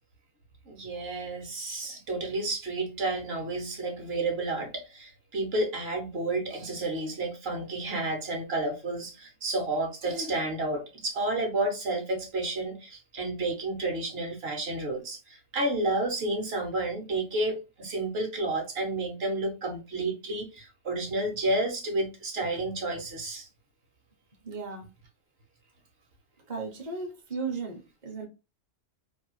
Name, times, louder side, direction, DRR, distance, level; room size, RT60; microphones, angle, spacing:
voice 1, 0.7-23.5, right 2 dB, 55° right, 1.0 m, -31 dB
voice 2, 24.4-24.9 26.5-28.3, right 4 dB, 40° right, 0.7 m, -36 dB
2.7 x 2.3 x 2.9 m
omnidirectional pair, 1.3 m